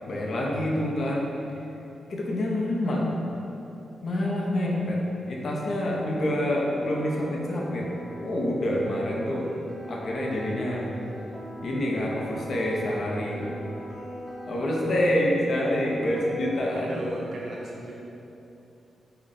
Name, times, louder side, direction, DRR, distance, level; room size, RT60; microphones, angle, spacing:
voice 1, 0.1-1.3 2.1-3.0 4.0-5.0 5.3-7.9 8.2-9.5 9.9-10.9 11.6-13.4 14.5-17.1, left 1 dB, 55° left, -3 dB, 0.5 m, -27 dB
sound 1, 6.0-16.8, equal, 10° right, 0.5 m, -40 dB
voice 2, 16.7-17.9, right 1 dB, 60° right, -3 dB, 0.6 m, -36 dB
3.7 x 2.1 x 3.9 m, 2.9 s
cardioid pair, 100°, 0 cm